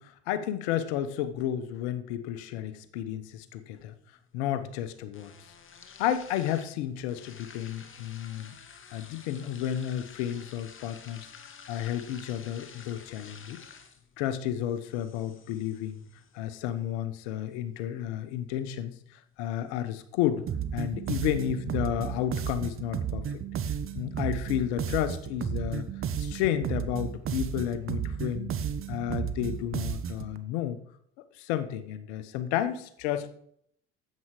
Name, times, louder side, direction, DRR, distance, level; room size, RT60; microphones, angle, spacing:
voice 1, 0.0-3.9 4.3-5.3 6.0-8.5 8.9-11.3 11.7-13.6 14.2-16.0 16.3-20.5 20.7-23.3 23.9-25.9 26.2-28.5 28.9-30.8 31.3-33.3, left 11 dB, 75° left, 13 dB, 1.0 m, -32 dB
champagne degass, 3.3-21.3, left 6 dB, 35° left, 1.7 m, -53 dB
sound 1, 20.5-30.3, right 8 dB, 40° right, 1.0 m, -33 dB
9.7 x 7.7 x 4.8 m, 0.67 s
hypercardioid pair, 70°, 34 cm